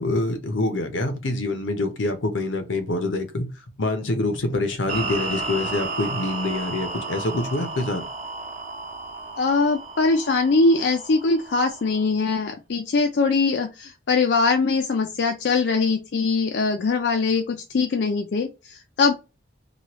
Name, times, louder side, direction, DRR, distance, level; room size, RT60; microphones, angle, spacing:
voice 1, 0.0-3.5 3.8-8.0, left 2 dB, 85° left, 0.7 m, -26 dB
sound 1, 4.9-12.1, right 3 dB, 40° right, 0.8 m, -33 dB
voice 2, 9.4-19.1, left 4 dB, 60° left, 0.4 m, -22 dB
3.0 x 2.3 x 2.9 m
head